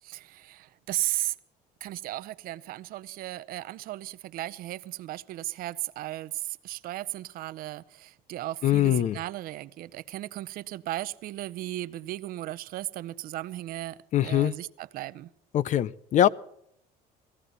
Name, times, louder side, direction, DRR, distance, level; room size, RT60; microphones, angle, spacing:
voice 1, 0.0-1.4 1.8-15.3, right 15 dB, 60° right, 0.7 m, -35 dB
voice 2, 8.6-9.2 14.1-14.5 15.5-16.3, left 11 dB, 45° left, 0.6 m, -22 dB
20.0 x 15.0 x 4.0 m
cardioid pair, 130°, 17 cm